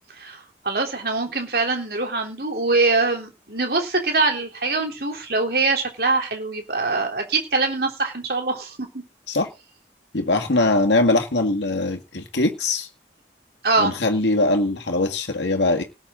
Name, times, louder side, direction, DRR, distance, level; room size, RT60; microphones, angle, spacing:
voice 1, 0.2-8.9 13.6-13.9, right 3 dB, 55° right, 3 dB, 3.6 m, -23 dB
voice 2, 10.1-12.9 13.8-15.8, left 2 dB, 85° left, 4 dB, 2.1 m, -21 dB
19.0 x 8.6 x 3.9 m, 0.28 s
head